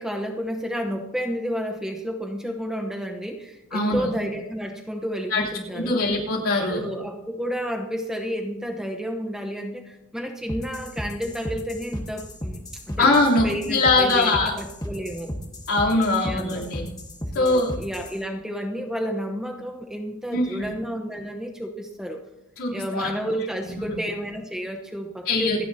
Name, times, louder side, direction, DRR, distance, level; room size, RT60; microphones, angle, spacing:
voice 1, 0.0-6.0 6.7-12.6 12.9-13.2 13.4-15.3 16.2-16.7 17.3-22.2 22.7-25.6, equal, 5° right, 2 dB, 0.9 m, -31 dB
voice 2, 3.7-4.1 5.3-5.4 5.7-6.8 13.0-14.5 15.7-16.9 17.3-17.7 20.3-20.7 22.6-23.1 23.6-24.0 25.3-25.6, left 2 dB, 90° left, -4 dB, 3.3 m, -22 dB
sound 1, 10.5-18.2, equal, 20° left, 1.5 m, -34 dB
27.5 x 10.0 x 2.8 m, 0.91 s
head